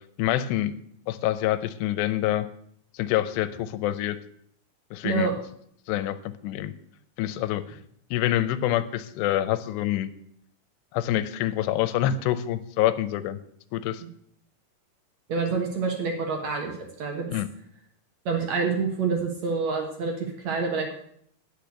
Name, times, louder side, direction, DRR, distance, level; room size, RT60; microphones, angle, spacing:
voice 1, 0.2-0.7 1.1-2.5 2.9-4.2 4.9-5.3 5.9-6.7 7.2-7.8 8.1-10.1 10.9-13.4 13.7-14.0 17.3-17.5, left 13 dB, 90° left, 14 dB, 2.8 m, -26 dB
voice 2, 15.3-17.3 18.3-20.9, right 4 dB, 60° right, 3 dB, 1.9 m, -27 dB
10.5 x 6.5 x 8.2 m, 0.67 s
omnidirectional pair, 4.8 m